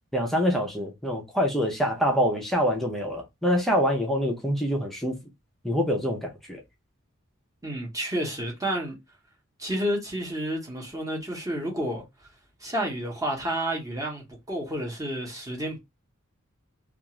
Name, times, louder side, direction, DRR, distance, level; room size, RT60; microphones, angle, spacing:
voice 1, 0.1-5.2 5.6-6.6, equal, ahead, 0.5 m, -25 dB
voice 2, 7.6-9.0 9.6-12.0 12.6-15.8, right 1 dB, 15° right, 0.9 m, -30 dB
2.4 x 2.4 x 2.9 m
head